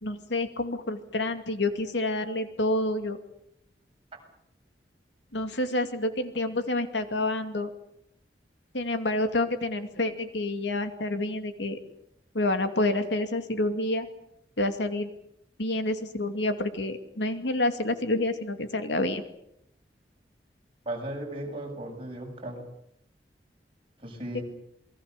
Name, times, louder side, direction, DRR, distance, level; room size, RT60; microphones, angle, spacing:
voice 1, 0.0-3.2 5.3-7.7 8.7-11.8 12.3-14.1 14.6-15.1 15.6-19.2 24.3-24.4, left 2 dB, 85° left, 7 dB, 2.5 m, -28 dB
voice 2, 20.9-22.6 24.0-24.4, right 1 dB, 30° right, 1 dB, 7.2 m, -36 dB
28.0 x 21.5 x 6.7 m, 0.76 s
head